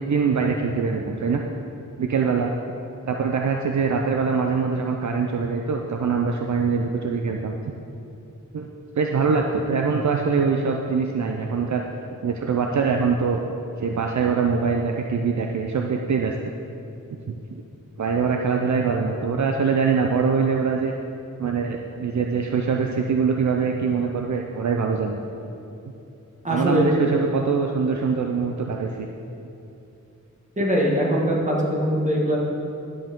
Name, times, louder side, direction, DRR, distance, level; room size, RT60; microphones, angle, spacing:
voice 1, 0.0-1.4 2.0-2.5 3.1-7.6 8.5-8.7 9.0-11.8 12.2-13.4 13.8-16.5 17.5-17.6 18.0-20.9 21.4-25.2 26.5-29.1, right 5 dB, 65° right, 2 dB, 0.6 m, -23 dB
voice 2, 26.4-27.0 30.6-32.4, equal, 25° right, -3 dB, 1.7 m, -22 dB
11.0 x 7.7 x 3.7 m, 2.8 s
wide cardioid pair, 120°, 32 cm